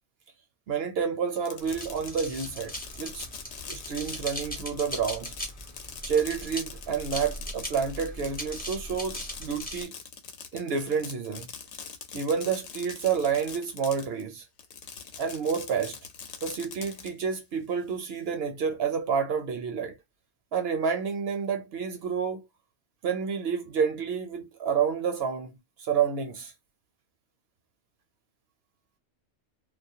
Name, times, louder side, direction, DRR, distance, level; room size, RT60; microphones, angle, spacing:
voice 1, 0.7-3.3 3.7-5.3 6.1-9.9 10.5-11.5 12.1-14.4 15.2-16.0 16.4-19.9 20.5-22.5 23.0-26.5, right 6 dB, 65° right, 0.7 m, -29 dB
Fireworks, 1.3-14.2 14.6-17.1, left 6 dB, 85° left, 0.9 m, -43 dB
sound 1, 1.6-9.8, equal, 10° left, 0.6 m, -39 dB
2.3 x 2.0 x 2.6 m
omnidirectional pair, 1.2 m